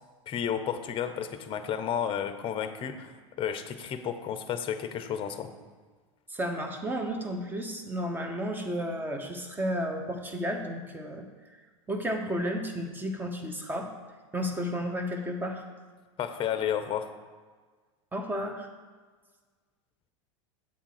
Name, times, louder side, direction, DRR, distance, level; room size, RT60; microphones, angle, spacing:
voice 1, 0.3-3.1 3.4-5.5 16.2-17.1, left 8 dB, 35° left, 9 dB, 0.7 m, -32 dB
voice 2, 6.3-11.3 11.9-13.9 14.3-15.6 18.1-18.7, equal, 10° right, 4 dB, 1.0 m, -32 dB
8.4 x 3.6 x 6.6 m, 1.5 s
hypercardioid pair, 105°, 16 cm